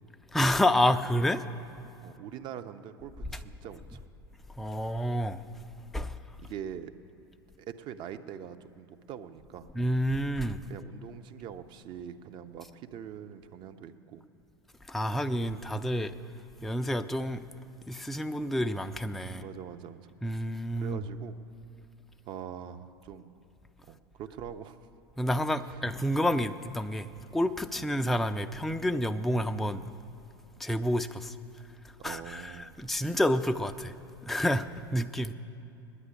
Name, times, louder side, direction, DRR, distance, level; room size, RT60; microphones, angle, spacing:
voice 1, 0.3-1.4 4.6-5.4 5.9-6.2 9.7-10.6 14.9-16.2 16.6-17.5 17.9-19.4 20.2-21.0 25.2-27.1 27.3-29.8 30.6-31.4 32.0-33.9 34.2-35.3, equal, ahead, 9 dB, 0.3 m, -29 dB
voice 2, 2.0-4.0 6.0-6.1 6.4-6.9 7.6-9.7 10.7-14.2 19.2-20.1 20.8-21.4 22.3-23.3 23.9-24.8 27.8-27.9 32.0-32.8, right 9 dB, 40° right, 10 dB, 0.6 m, -43 dB
9.8 x 9.4 x 8.6 m, 2.7 s
figure-of-eight pair, 80°, 12 cm